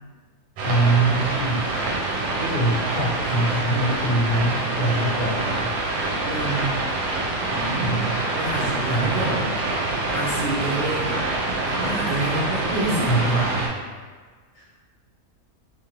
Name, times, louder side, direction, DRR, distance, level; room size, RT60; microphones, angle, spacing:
voice 1, 0.6-1.7 2.4-5.7 7.8-8.1 8.9-9.6 13.0-13.5 14.5-14.7, right 2 dB, 50° left, -8 dB, 0.8 m, -24 dB
sound 1, 0.6-13.7, right 2 dB, 80° right, 1.0 m, -26 dB
voice 2, 6.2-6.8 7.4-8.0 8.3-9.5 10.1-11.3 11.7-13.6, right 2 dB, 60° right, -10 dB, 0.6 m, -27 dB
2.7 x 2.5 x 2.9 m, 1.5 s
omnidirectional pair, 1.5 m